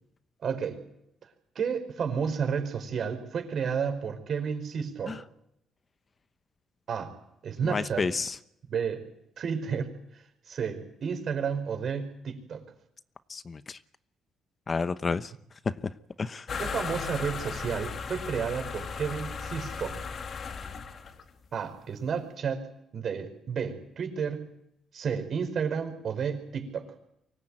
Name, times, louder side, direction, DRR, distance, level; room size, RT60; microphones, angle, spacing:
voice 1, 0.4-0.8 1.5-5.2 6.9-7.1 7.4-8.1 8.7-9.0 9.4-12.6 16.6-20.0 21.5-22.7 22.9-24.5 24.9-26.9, right 6 dB, 60° right, 4.9 m, -31 dB
voice 2, 7.6-8.4 13.3-13.8 14.7-15.3 15.7-15.8 16.2-16.5, left 4 dB, 35° left, 0.9 m, -30 dB
sound 1, 16.5-21.3, left 5 dB, 55° left, 2.5 m, -36 dB
24.0 x 17.5 x 9.0 m
cardioid pair, 90°, 0 cm